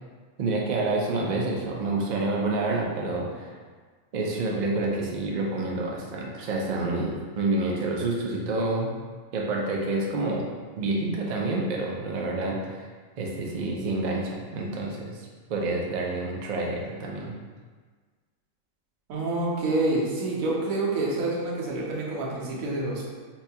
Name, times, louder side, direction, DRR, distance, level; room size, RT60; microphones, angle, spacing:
voice 1, 0.4-3.6 4.1-8.9 9.3-10.5 10.8-12.9 13.2-17.3, right 2 dB, 70° right, -2 dB, 0.4 m, -28 dB
voice 2, 19.1-23.0, right 2 dB, 85° right, -4 dB, 1.2 m, -27 dB
4.2 x 2.3 x 2.7 m, 1.5 s
omnidirectional pair, 1.4 m